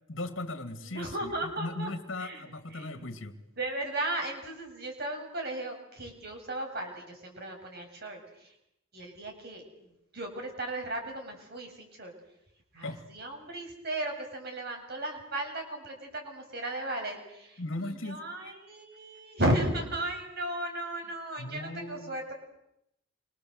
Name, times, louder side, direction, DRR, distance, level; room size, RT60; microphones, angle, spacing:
voice 1, 0.1-3.3 12.8-13.0 17.6-18.5 21.4-22.1, left 2 dB, 60° left, 2.5 m, -38 dB
voice 2, 0.8-1.9 2.2-2.4 2.7-3.1 3.6-8.5 8.9-12.1 12.7-22.3, right 1 dB, 50° right, 7.5 m, -35 dB
28.5 x 25.5 x 8.1 m
head